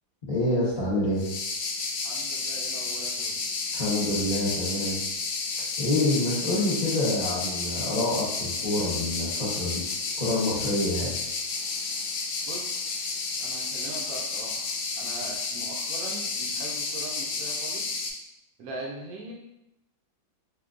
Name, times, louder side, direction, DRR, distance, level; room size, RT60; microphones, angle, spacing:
voice 1, 0.3-1.2 3.7-5.0 5.8-9.8 10.2-11.2, left 1 dB, 40° left, -9 dB, 0.5 m, -27 dB
sound 1, 1.2-18.1, left 4 dB, 85° left, 1.4 m, -31 dB
voice 2, 2.0-3.3 12.4-12.9 13.4-14.7 15.0-18.0 18.6-19.3, right 2 dB, 85° right, -1 dB, 0.7 m, -41 dB
5.5 x 2.2 x 2.4 m, 0.86 s
omnidirectional pair, 2.2 m